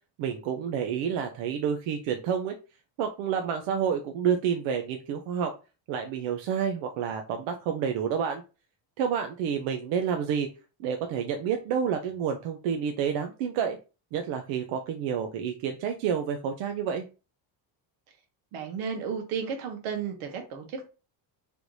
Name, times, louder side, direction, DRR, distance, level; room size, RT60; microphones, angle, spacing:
voice 1, 0.2-2.6 3.0-5.5 5.9-8.4 9.0-10.5 10.8-13.8 14.1-17.0, right 7 dB, 75° right, 4 dB, 0.7 m, -29 dB
voice 2, 18.5-20.9, right 6 dB, 90° right, 4 dB, 1.3 m, -33 dB
3.4 x 2.6 x 4.6 m, 0.32 s
cardioid pair, 155°, 47 cm